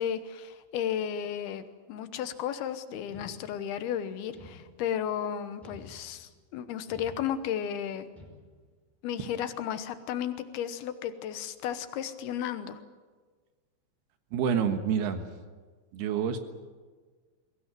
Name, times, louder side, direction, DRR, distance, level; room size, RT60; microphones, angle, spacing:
voice 1, 0.0-8.1 9.0-12.8, left 9 dB, 70° left, 11 dB, 2.6 m, -34 dB
sound 1, 3.1-3.9 4.3-5.1 5.6-6.4 6.9-7.7 8.2-8.8, left 1 dB, ahead, 4.6 m, -51 dB
voice 2, 14.3-15.3 15.9-16.4, right 7 dB, 65° right, 8 dB, 3.2 m, -27 dB
22.5 x 18.0 x 9.1 m, 1.5 s
omnidirectional pair, 5.4 m